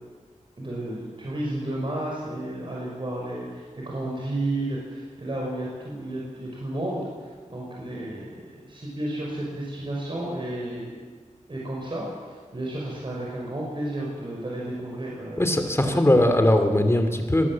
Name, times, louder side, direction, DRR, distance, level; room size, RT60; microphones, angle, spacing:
voice 1, 0.6-10.9 11.5-15.5 15.8-16.0, right 1 dB, 40° right, -4 dB, 5.7 m, -32 dB
voice 2, 15.4-17.5, left 1 dB, 20° left, 6 dB, 2.9 m, -20 dB
25.0 x 18.5 x 7.6 m, 1.5 s
wide cardioid pair, 85°, 13 cm